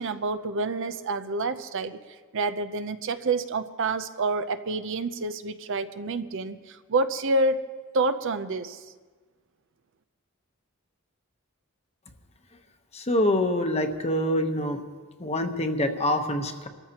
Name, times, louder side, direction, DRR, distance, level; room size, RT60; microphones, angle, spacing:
voice 1, 0.0-2.0 2.3-7.6 7.9-8.8, right 3 dB, 60° right, 11 dB, 0.6 m, -28 dB
voice 2, 12.9-14.8 15.2-16.7, left 1 dB, 30° left, 6 dB, 1.0 m, -25 dB
25.5 x 13.5 x 2.9 m, 1.4 s
head